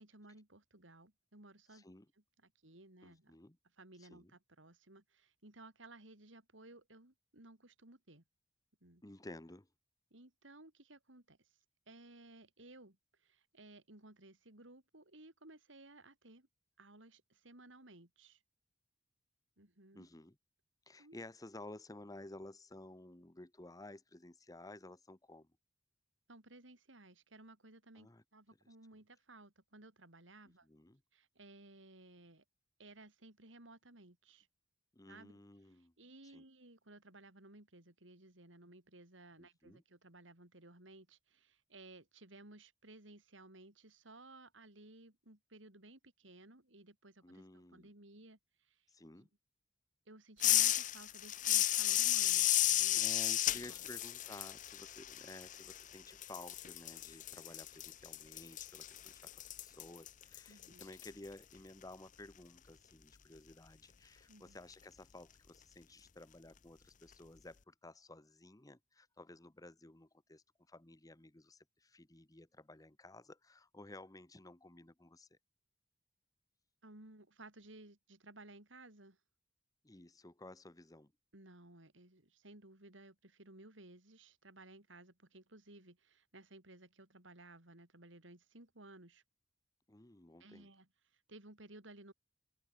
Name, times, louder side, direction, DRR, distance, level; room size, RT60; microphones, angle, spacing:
voice 1, 0.0-1.9 2.4-3.4 3.8-8.2 8.8-9.0 10.1-11.5 11.9-16.5 16.8-18.4 19.6-20.1 21.0-21.2 26.3-30.7 31.1-32.4 32.8-34.5 35.1-35.4 35.7-48.9 50.1-53.9 60.5-60.8 64.3-64.6 76.8-79.2 81.3-89.2 90.4-92.1, right 2 dB, 75° right, 4.2 m, -58 dB
voice 2, 1.7-2.1 3.0-3.6 4.0-4.3 9.0-9.7 19.9-20.4 20.9-25.5 27.9-28.2 30.6-31.0 34.9-35.9 36.2-36.4 39.4-39.8 47.2-47.9 48.9-49.3 52.9-75.3 79.8-81.1 89.9-90.7, left 2 dB, 20° left, 1.1 m, -54 dB
sound 1, 50.4-55.9 56.2-61.1, left 13 dB, 40° left, 0.6 m, -33 dB
open air
head